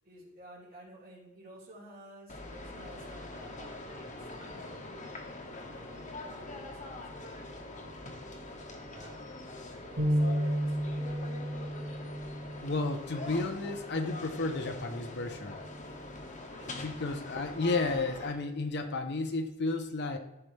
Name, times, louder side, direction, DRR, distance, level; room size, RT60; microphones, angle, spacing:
voice 1, 0.0-9.2 9.9-11.2 16.5-16.8, right 1 dB, 45° right, -6 dB, 3.3 m, -53 dB
sound 1, 2.3-18.3, left 2 dB, 40° left, 1.2 m, -44 dB
sound 2, 10.0-16.2, equal, 75° right, 2.2 m, -34 dB
voice 2, 12.6-15.6 16.7-20.2, left 3 dB, 55° left, 6 dB, 0.8 m, -32 dB
14.0 x 4.9 x 3.3 m, 0.96 s
head